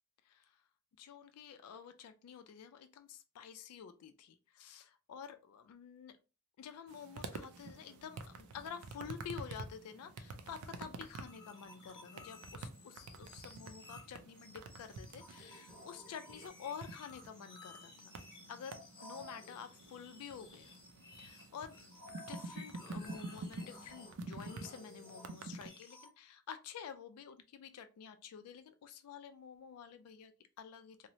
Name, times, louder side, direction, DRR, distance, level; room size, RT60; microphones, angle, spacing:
voice 1, 1.0-6.2 6.6-18.2 18.5-20.8 21.2-21.8 22.1-31.1, left 7 dB, 80° left, 9 dB, 0.3 m, -50 dB
sound 1, 6.9-25.7, right 3 dB, 75° right, 0.4 m, -49 dB
sound 2, 11.2-26.1, left 2 dB, 50° left, 1.0 m, -55 dB
2.9 x 2.0 x 2.6 m, 0.32 s
head